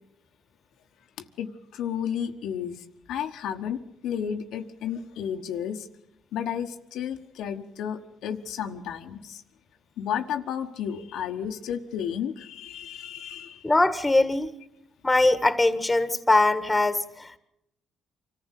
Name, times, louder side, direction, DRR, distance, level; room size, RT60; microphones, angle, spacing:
voice 1, 1.4-5.9 6.3-9.4 10.0-13.7, left 8 dB, 85° left, 4 dB, 1.3 m, -32 dB
voice 2, 13.6-14.5 15.0-17.4, left 2 dB, 15° left, 12 dB, 1.6 m, -22 dB
25.0 x 14.5 x 8.3 m, 0.82 s
cardioid pair, 90°, 0 cm